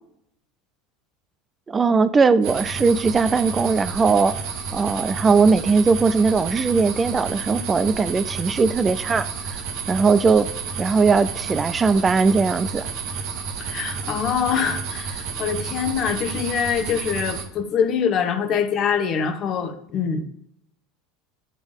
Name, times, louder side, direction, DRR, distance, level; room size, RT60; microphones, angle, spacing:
voice 1, 1.7-4.3 4.7-9.6 9.9-10.5 10.8-12.9, right 4 dB, 25° right, 14 dB, 0.4 m, -19 dB
sound 1, 2.4-17.5, right 6 dB, 55° right, 1.1 m, -31 dB
voice 2, 13.6-20.2, left 7 dB, 45° left, 7 dB, 1.0 m, -24 dB
9.9 x 3.5 x 5.0 m, 0.75 s
hypercardioid pair, 75°, 0 cm